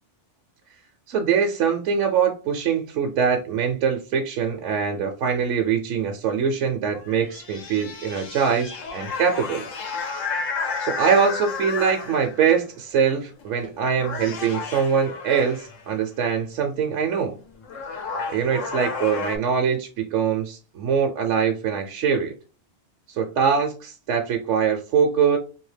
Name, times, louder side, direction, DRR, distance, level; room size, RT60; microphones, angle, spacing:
voice 1, 1.1-9.7 10.8-17.3 18.3-22.3 23.1-25.4, right 6 dB, 75° right, 3 dB, 0.9 m, -23 dB
sound 1, 7.0-12.5 13.4-13.7 14.0-15.8 17.2-17.3 17.6-19.4, left 5 dB, 85° left, 1.1 m, -32 dB
2.8 x 2.7 x 3.2 m, 0.34 s
omnidirectional pair, 1.3 m